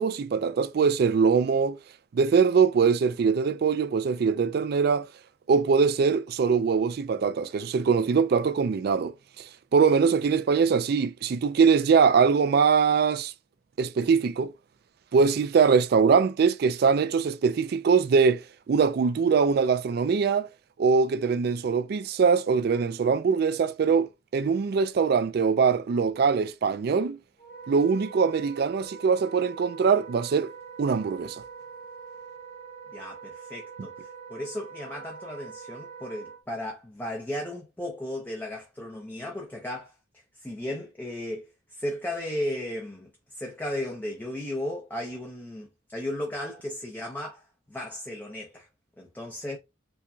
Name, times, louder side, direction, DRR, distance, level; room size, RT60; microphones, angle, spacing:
voice 1, 0.0-1.8 2.1-5.1 5.5-13.3 13.8-14.5 15.1-20.5 20.8-27.2 27.7-30.5 30.8-31.4, right 5 dB, 55° right, 0.3 m, -22 dB
Wind instrument woodwind instrument, 27.4-36.4, right 6 dB, 40° left, 1.4 m, -44 dB
voice 2, 32.9-48.7 49.0-49.6, left 1 dB, 10° left, 0.5 m, -35 dB
4.6 x 2.2 x 2.6 m
head